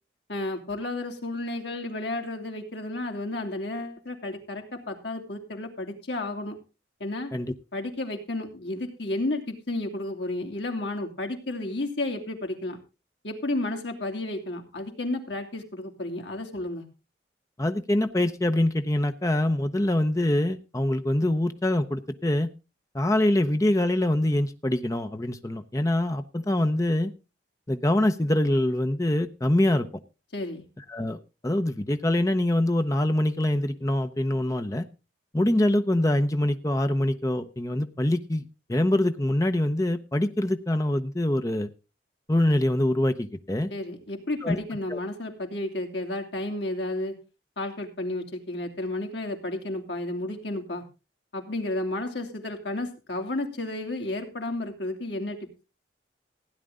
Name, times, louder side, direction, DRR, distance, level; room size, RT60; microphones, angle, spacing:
voice 1, 0.3-6.6 7.0-7.3 7.7-12.8 13.2-16.9 30.3-30.7 43.7-47.2 47.6-50.8 51.3-55.4, left 2 dB, 70° left, 4 dB, 2.8 m, -32 dB
voice 2, 17.6-22.5 22.9-27.1 27.7-29.9 30.9-34.9 35.3-38.4 38.7-41.7 42.3-43.7 44.4-44.6 44.9-45.0, left 1 dB, 15° left, 8 dB, 0.8 m, -24 dB
16.0 x 10.0 x 3.7 m, 0.30 s
head